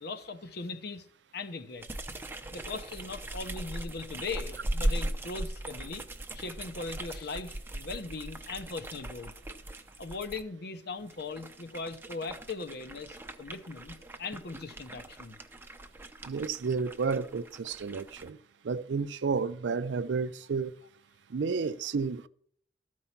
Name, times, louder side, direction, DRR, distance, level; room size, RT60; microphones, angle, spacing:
voice 1, 0.0-1.0 1.3-1.8 2.5-6.0 6.3-9.3 10.0-15.4, left 3 dB, 65° left, 0.8 m, -39 dB
sound 1, 1.8-10.4 11.0-18.3, right 1 dB, 15° right, 0.6 m, -39 dB
voice 2, 16.2-18.4 18.6-20.7 21.3-22.3, right 5 dB, 85° right, 0.5 m, -31 dB
13.0 x 4.7 x 5.8 m
head